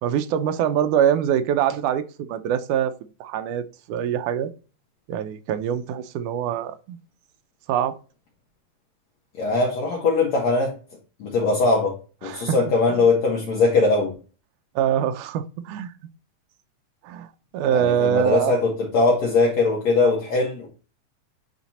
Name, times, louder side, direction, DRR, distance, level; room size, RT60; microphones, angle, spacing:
voice 1, 0.0-3.0 3.2-4.5 5.1-7.0 7.7-8.0 12.2-12.6 12.9-13.0 14.8-15.9 17.0-18.6, right 9 dB, 80° right, 2.1 m, -24 dB
voice 2, 9.4-10.7 11.2-11.9 12.2-14.1 17.7-20.7, left 3 dB, 60° left, 2.5 m, -21 dB
9.0 x 4.2 x 4.1 m
omnidirectional pair, 3.7 m